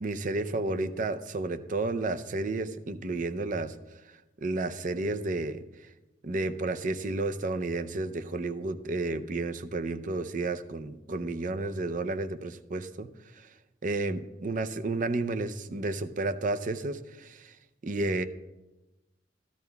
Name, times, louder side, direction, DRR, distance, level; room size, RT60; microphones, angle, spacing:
voice 1, 0.0-3.7 4.4-5.6 6.2-13.1 13.8-17.5 17.8-18.2, right 2 dB, 45° right, 10 dB, 0.5 m, -31 dB
14.0 x 12.5 x 2.3 m, 1.1 s
head